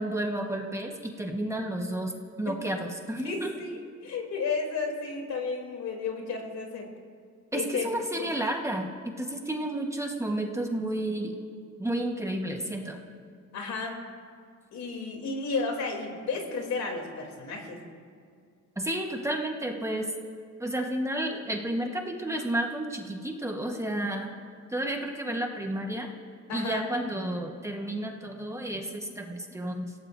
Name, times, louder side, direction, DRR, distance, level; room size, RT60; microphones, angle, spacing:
voice 1, 0.0-2.1 2.4-3.5 7.5-11.4 11.8-13.0 18.8-20.1 20.6-24.3 24.7-26.1 26.5-29.9, right 1 dB, 10° right, 1 dB, 1.2 m, -31 dB
voice 2, 3.2-6.9 7.5-7.9 8.2-8.3 13.5-14.0 14.7-17.8 26.5-26.8, left 4 dB, 70° left, 1 dB, 3.1 m, -32 dB
29.5 x 17.0 x 2.6 m, 2.2 s
cardioid pair, 130°, 29 cm